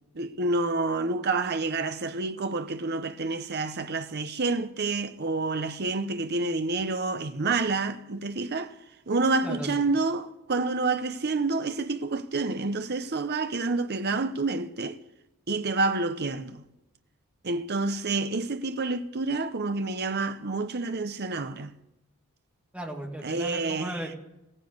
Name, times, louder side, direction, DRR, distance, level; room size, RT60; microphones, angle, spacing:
voice 1, 0.1-8.7 9.1-15.0 15.5-16.6 17.4-21.7 23.2-24.1, right 3 dB, 50° right, 0.9 m, -28 dB
voice 2, 22.7-24.2, right 1 dB, 5° right, 2.2 m, -36 dB
16.0 x 10.0 x 8.0 m
head